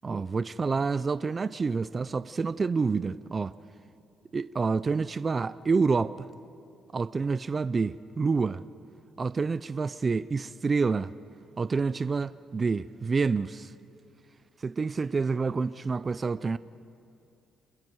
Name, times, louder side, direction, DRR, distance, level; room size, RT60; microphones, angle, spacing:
voice 1, 0.0-3.5 4.3-6.3 6.9-8.6 9.2-11.1 11.6-13.7 14.6-16.6, right 4 dB, 35° right, 0.4 m, -28 dB
28.5 x 21.0 x 4.7 m
cardioid pair, 90°, 0 cm